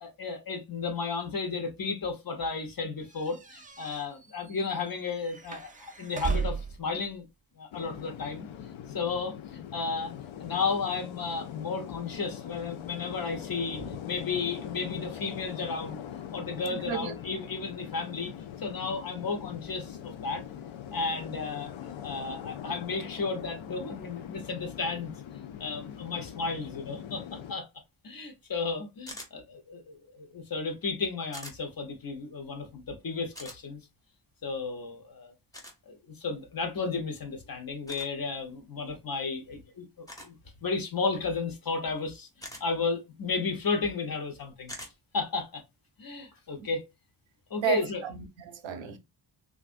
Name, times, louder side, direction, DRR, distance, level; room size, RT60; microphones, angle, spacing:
voice 1, 0.0-7.3 7.6-8.4 8.9-16.0 16.3-18.3 18.6-20.4 20.9-21.7 22.0-25.1 25.6-27.7 28.0-33.8 34.4-35.3 35.9-40.3 40.6-44.7 45.1-45.6 46.0-46.8 47.5-48.0, left 4 dB, 50° left, 0.9 m, -33 dB
sound 1, 3.1-6.8, right 5 dB, 20° right, 0.3 m, -36 dB
sound 2, 7.7-27.5, left 9 dB, 90° left, 0.6 m, -42 dB
sound 3, 29.1-29.3 31.3-31.6 33.3-33.6 35.5-35.8 37.9-38.1 40.1-40.3 42.4-42.6 44.7-44.9, equal, 10° left, 0.7 m, -43 dB
voice 2, 47.6-49.0, right 9 dB, 75° right, 0.7 m, -33 dB
3.4 x 2.5 x 2.4 m
wide cardioid pair, 175°, 46 cm